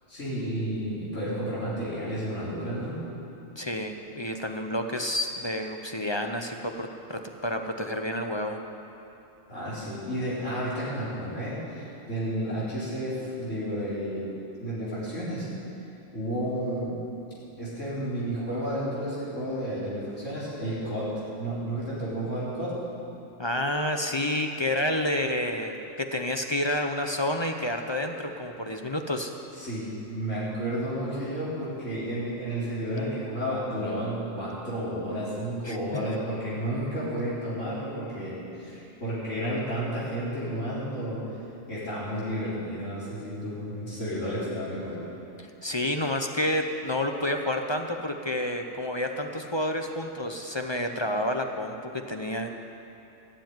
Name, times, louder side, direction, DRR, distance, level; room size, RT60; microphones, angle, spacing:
voice 1, 0.1-3.0 9.5-14.3 14.6-15.5 16.1-17.0 17.6-21.1 21.4-22.7 29.6-41.2 41.7-45.0, right 1 dB, 75° left, -9 dB, 4.2 m, -31 dB
voice 2, 3.6-8.6 23.4-29.3 35.6-36.0 45.4-52.5, left 1 dB, 25° left, 4 dB, 0.7 m, -29 dB
16.5 x 7.7 x 9.3 m, 2.9 s
omnidirectional pair, 1.3 m